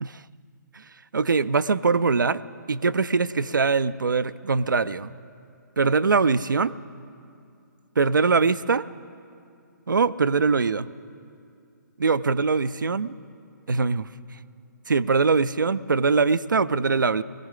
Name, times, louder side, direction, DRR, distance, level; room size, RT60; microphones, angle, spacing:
voice 1, 1.1-2.4 2.7-5.1 5.8-6.7 8.0-8.8 9.9-10.9 12.0-13.1 13.7-14.1 14.9-17.2, right 4 dB, 85° right, 17 dB, 0.4 m, -22 dB
20.5 x 15.5 x 3.7 m, 2.5 s
figure-of-eight pair, 135°, 10 cm